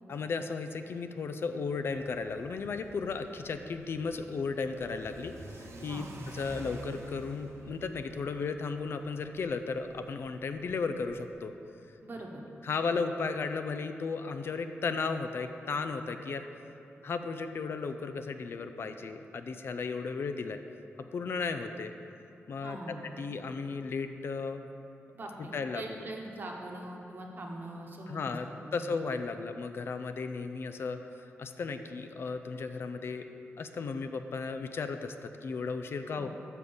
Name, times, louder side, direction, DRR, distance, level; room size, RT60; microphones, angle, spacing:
voice 1, 0.1-6.0 6.3-11.5 12.6-16.5 17.0-20.6 21.1-21.9 22.5-22.8 23.2-24.7 25.5-26.0 28.1-33.3 33.6-36.3, left 4 dB, 55° left, 8 dB, 0.4 m, -35 dB
Car / Accelerating revving vroom, 1.9-11.3, right 1 dB, 80° right, 0.9 m, -48 dB
voice 2, 12.0-12.4 22.6-23.0 25.1-28.4 28.6-28.7 36.1-36.3, right 1 dB, 45° right, 0 dB, 1.0 m, -42 dB
6.3 x 5.5 x 6.9 m, 2.9 s
wide cardioid pair, 130°, 5 cm